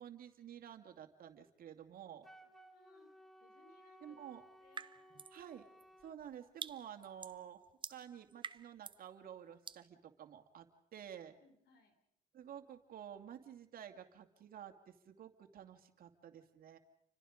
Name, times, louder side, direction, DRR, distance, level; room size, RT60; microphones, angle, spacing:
voice 1, 0.0-2.3 4.0-4.4 5.3-5.6 6.0-7.6 7.9-10.7 10.9-11.3 12.3-16.8, right 9 dB, 60° right, 6 dB, 2.5 m, -51 dB
voice 2, 2.0-3.1 3.4-4.2 4.6-5.2 11.4-12.0, left 3 dB, 70° left, 7 dB, 4.4 m, -68 dB
Wind instrument woodwind instrument, 2.2-6.2, equal, ahead, 1.2 m, -60 dB
sound 1, 4.7-5.4 5.8-9.1 9.7-9.9, right 5 dB, 30° right, 0.8 m, -48 dB
30.0 x 25.0 x 5.2 m, 0.77 s
cardioid pair, 100°, 17 cm